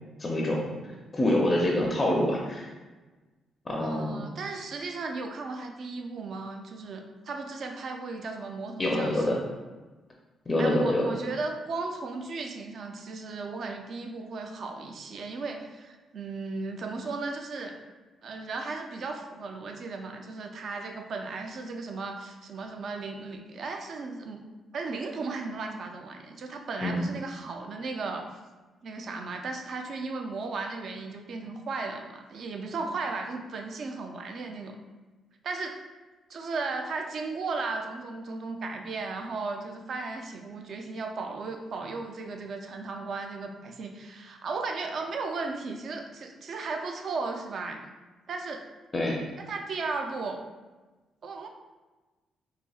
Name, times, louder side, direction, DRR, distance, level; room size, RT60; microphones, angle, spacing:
voice 1, 0.2-0.8 1.1-2.7 3.7-4.2 8.8-9.4 10.5-11.1 26.8-27.0 48.9-49.2, left 1 dB, 25° left, -1 dB, 0.4 m, -26 dB
voice 2, 3.8-9.5 10.6-17.8 18.2-24.4 24.7-28.4 28.8-34.8 35.4-35.8 36.3-47.9 48.3-48.7 49.5-50.4 51.2-51.5, right 3 dB, 55° right, 4 dB, 0.3 m, -35 dB
4.0 x 2.7 x 2.3 m, 1.2 s
cardioid pair, 125°, 0 cm